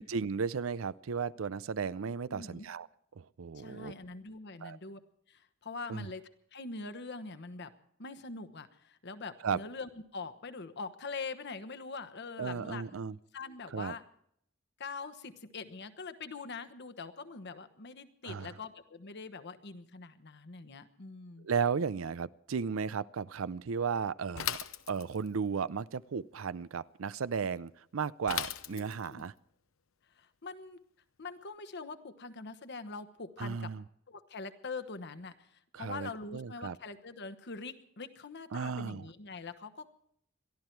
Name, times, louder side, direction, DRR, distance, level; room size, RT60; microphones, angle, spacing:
voice 1, 0.0-2.9 3.2-4.0 4.6-4.8 5.9-6.1 9.4-9.6 12.4-13.2 13.7-13.9 18.2-18.5 21.4-24.6 24.9-29.3 33.4-33.8 35.7-36.8 38.5-39.0, right 6 dB, 80° right, 18 dB, 0.5 m, -35 dB
voice 2, 2.3-2.7 3.5-5.0 5.3-7.7 8.0-12.8 13.3-14.0 14.8-21.5 28.7-29.2 30.1-30.8 31.2-33.7 34.1-39.9, left 4 dB, 55° left, 11 dB, 1.2 m, -43 dB
Bicycle / Mechanisms, 24.4-25.4 28.3-29.2, left 11 dB, 85° left, 0.8 m, -37 dB
22.5 x 13.5 x 4.6 m, 0.69 s
head